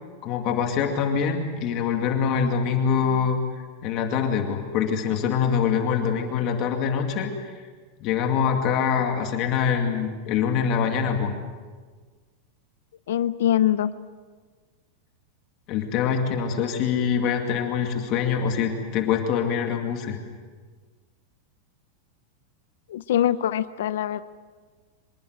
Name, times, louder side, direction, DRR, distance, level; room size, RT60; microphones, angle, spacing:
voice 1, 0.2-7.6 8.0-11.3 15.7-20.2, left 7 dB, 35° left, 3 dB, 2.4 m, -24 dB
voice 2, 13.1-13.9 22.9-24.2, left 11 dB, 80° left, 13 dB, 0.7 m, -23 dB
25.5 x 21.0 x 8.1 m, 1.5 s
supercardioid pair, 170°, 0 cm